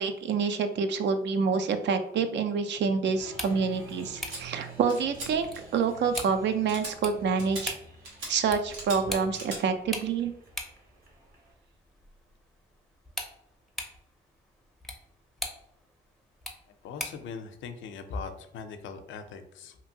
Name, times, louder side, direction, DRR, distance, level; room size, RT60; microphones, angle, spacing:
voice 1, 0.0-7.8 8.3-10.3, right 5 dB, 60° right, 8 dB, 0.4 m, -27 dB
Applause, 3.1-11.5, right 3 dB, 45° right, 1.0 m, -49 dB
sound 1, 3.2-17.3, left 1 dB, ahead, 0.5 m, -43 dB
sound 2, 4.3-4.4 4.9-5.3 5.5-5.8 6.1-6.2 6.7-6.9 7.4-7.6 8.0-8.3 8.7-9.0 9.3-9.6, right 2 dB, 90° right, 1.1 m, -39 dB
voice 2, 16.8-19.8, left 5 dB, 75° left, 8 dB, 0.5 m, -40 dB
2.8 x 2.5 x 2.7 m, 0.79 s
cardioid pair, 90°, 20 cm